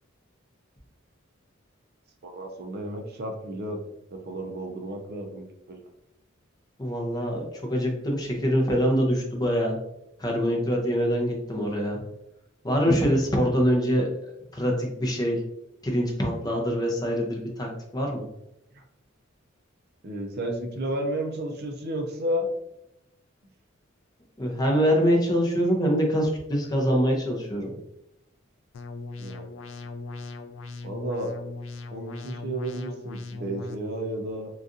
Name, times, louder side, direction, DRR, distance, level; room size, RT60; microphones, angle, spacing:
voice 1, 2.2-3.8 4.1-5.8 18.7-18.8 20.0-22.5 29.2-29.5 30.8-31.3 31.9-34.5, right 1 dB, 50° right, 3 dB, 0.5 m, -32 dB
voice 2, 6.8-9.8 10.2-12.0 12.6-15.4 15.8-18.3 24.4-27.7, equal, 20° left, 0 dB, 0.6 m, -24 dB
sound 1, 28.7-33.7, left 3 dB, 65° left, 0.3 m, -39 dB
3.9 x 2.4 x 2.5 m, 0.85 s
head